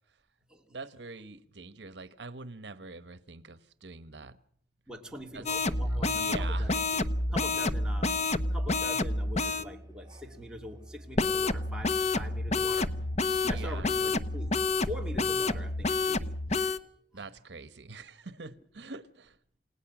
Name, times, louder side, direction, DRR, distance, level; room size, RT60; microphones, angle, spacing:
voice 1, 0.7-4.4 5.3-5.4 6.0-6.7 13.4-14.1 17.1-19.4, right 3 dB, 75° right, 1.2 m, -44 dB
voice 2, 4.9-13.1 13.5-16.3 16.8-17.3, equal, 5° right, 2.9 m, -44 dB
sound 1, 5.5-9.6 11.2-16.8, left 3 dB, 40° left, 1.0 m, -29 dB
Musical instrument, 9.1-14.8, right 1 dB, 25° right, 2.3 m, -50 dB
28.5 x 18.0 x 6.1 m
head